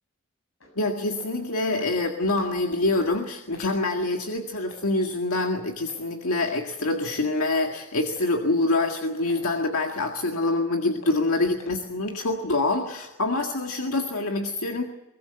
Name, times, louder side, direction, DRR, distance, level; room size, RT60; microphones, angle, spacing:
sound 1, 0.6-0.7 1.1-1.3 1.7-1.9 2.2-2.6 2.9-3.1 3.5-3.7 4.1-4.2 4.7-4.8 5.3-5.5 5.9-6.0 6.5-6.6 7.0-7.2 7.6-7.7 8.2-8.3 8.7-8.8 9.3-9.4 9.8-10.0 10.4-10.6 11.0-11.2 11.6-11.8 12.2-12.3 12.7-12.9 13.3-13.5 13.9-14.1, left 2 dB, 70° left, 6.8 m, -46 dB
voice 1, 0.8-14.8, left 2 dB, 85° left, 2 dB, 1.9 m, -26 dB
23.0 x 19.0 x 7.7 m, 1.0 s
head